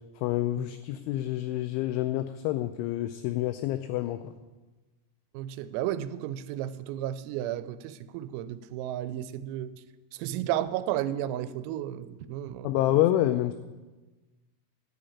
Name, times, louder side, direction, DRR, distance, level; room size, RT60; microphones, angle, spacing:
voice 1, 0.2-4.3 12.6-13.5, left 14 dB, 90° left, 10 dB, 2.7 m, -27 dB
voice 2, 5.3-9.7 10.1-12.9, right 12 dB, 90° right, 14 dB, 3.3 m, -33 dB
11.5 x 7.8 x 8.4 m, 1.2 s
omnidirectional pair, 5.9 m